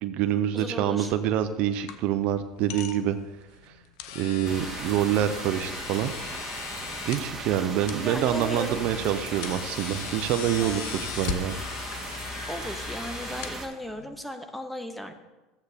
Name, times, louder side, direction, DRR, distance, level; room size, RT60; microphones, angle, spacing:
voice 1, 0.0-3.2 3.7-3.8 4.1-6.1 7.1-11.5, right 10 dB, 60° right, 10 dB, 0.5 m, -26 dB
voice 2, 0.5-1.1 7.2-9.1 10.6-11.1 12.5-15.1, equal, ahead, 6 dB, 0.9 m, -37 dB
sound 1, 0.9-14.2, left 8 dB, 70° left, 0.7 m, -40 dB
sound 2, 4.4-13.7, right 2 dB, 20° right, 1.8 m, -37 dB
13.0 x 7.9 x 2.8 m, 1.1 s
hypercardioid pair, 80°, 2 cm